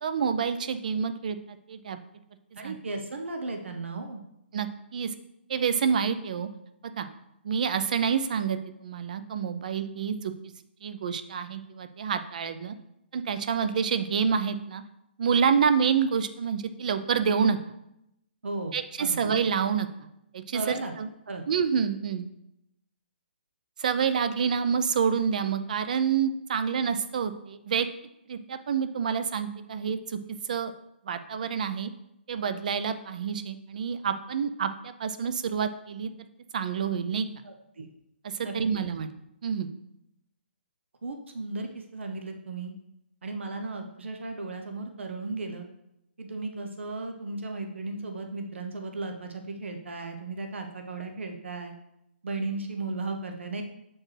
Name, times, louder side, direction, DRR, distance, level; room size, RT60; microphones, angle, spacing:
voice 1, 0.0-2.0 2.6-2.8 4.5-5.1 5.5-6.5 7.0-7.1 7.4-10.3 10.8-12.7 13.1-14.8 15.2-17.6 18.7-19.9 20.3-21.1 21.5-22.3 23.8-27.9 28.3-30.2 30.5-30.7 31.0-31.9 32.3-36.1 36.5-37.3 38.4-39.1 39.4-39.7, right 6 dB, 40° right, 10 dB, 0.4 m, -28 dB
voice 2, 2.5-4.2 18.4-19.4 20.5-20.9 21.3-21.4 37.4-37.9 38.4-38.5 41.0-42.7 43.2-45.7 46.2-51.7 52.2-53.6, right 3 dB, 90° right, 4 dB, 0.8 m, -35 dB
7.3 x 4.4 x 3.2 m, 0.83 s
hypercardioid pair, 170°, 6 cm